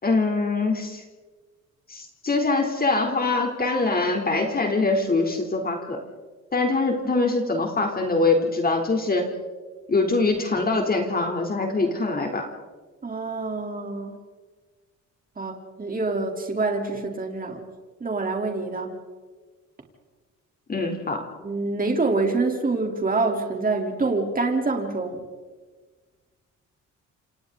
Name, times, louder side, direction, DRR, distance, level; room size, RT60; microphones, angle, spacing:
voice 1, 0.0-1.0 1.9-6.0 6.5-9.3 9.9-12.5 20.7-21.3, left 3 dB, 30° left, 3 dB, 3.7 m, -23 dB
voice 2, 13.0-14.2 15.4-17.6 18.0-18.9 21.4-25.2, right 3 dB, 30° right, 2 dB, 4.0 m, -26 dB
28.5 x 28.0 x 4.1 m, 1.3 s
cardioid pair, 90°, 30 cm